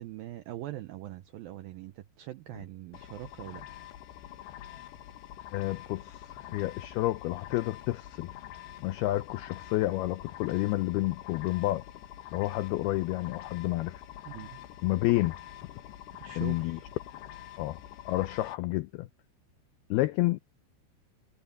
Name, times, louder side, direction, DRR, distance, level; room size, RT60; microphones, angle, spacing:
voice 1, 0.0-3.6 14.3-14.6 16.2-16.9, right 14 dB, 80° right, 2.1 m, -42 dB
sound 1, 2.9-18.6, left 12 dB, 70° left, 3.4 m, -46 dB
voice 2, 5.5-8.3 8.8-11.8 12.3-14.0 14.8-15.4 16.3-16.8 17.6-17.8 18.1-19.1 19.9-20.4, left 18 dB, 90° left, 2.2 m, -30 dB
omnidirectional pair, 5.2 m